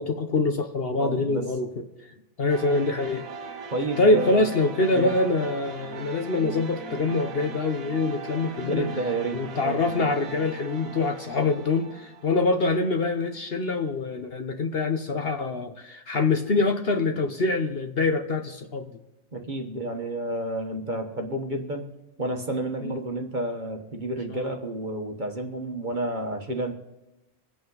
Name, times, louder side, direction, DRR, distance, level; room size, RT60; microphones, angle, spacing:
voice 1, 0.0-1.9 2.4-3.3 4.0-8.9 9.3-18.9 22.8-23.0 24.3-24.6, left 3 dB, 50° left, 5 dB, 1.0 m, -25 dB
voice 2, 1.0-1.5 3.7-4.5 4.9-5.1 8.6-9.8 19.3-21.9 22.2-26.7, right 2 dB, 35° right, 3 dB, 1.3 m, -30 dB
sound 1, 2.5-13.4, right 4 dB, 90° right, 1.4 m, -40 dB
24.5 x 8.5 x 3.9 m, 1.0 s
omnidirectional pair, 1.4 m